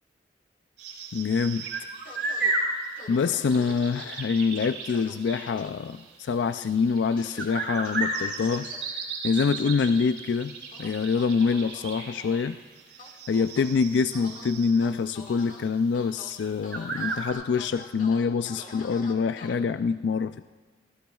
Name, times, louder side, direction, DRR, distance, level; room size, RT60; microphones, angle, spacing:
sound 1, 0.8-15.1 15.4-15.5 15.9-16.0 16.3-17.3, right 3 dB, 80° right, 4.6 m, -34 dB
voice 1, 1.1-1.7 3.1-8.7 9.2-12.6 13.3-20.4, left 5 dB, 80° left, 11 dB, 0.3 m, -25 dB
sound 2, 2.0-2.5 3.0-3.8 4.5-5.1 5.5-5.7 7.2-7.5 7.8-8.8 9.3-9.9 10.7-12.4 13.0-13.7 14.1-14.5 14.8-15.6 15.9-16.3 16.6-19.5, left 3 dB, 50° left, 1.7 m, -45 dB
24.5 x 16.5 x 2.4 m, 1.4 s
head